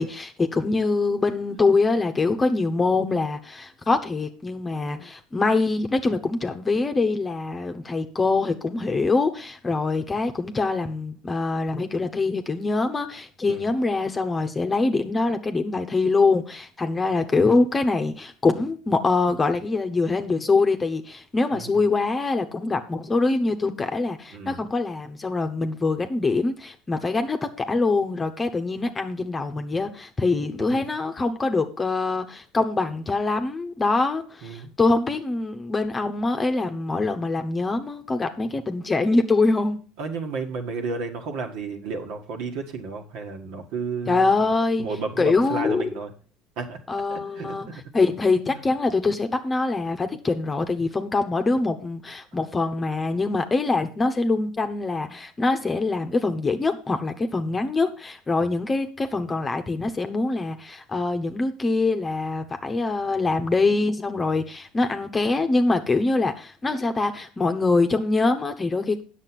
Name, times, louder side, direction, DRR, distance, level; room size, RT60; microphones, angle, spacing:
voice 1, 0.0-39.8 44.1-44.9 45.2-45.9 46.9-47.7 47.9-69.0, left 3 dB, 20° left, 7 dB, 1.0 m, -24 dB
voice 2, 21.5-21.8 24.3-24.7 30.6-30.8 34.4-34.7 40.0-44.5 44.8-46.1 46.6-46.8 47.1-47.8 48.5-48.6 58.4-58.6, right 4 dB, 60° right, 4 dB, 1.7 m, -33 dB
9.0 x 6.5 x 6.0 m, 0.39 s
hypercardioid pair, 75°, 0 cm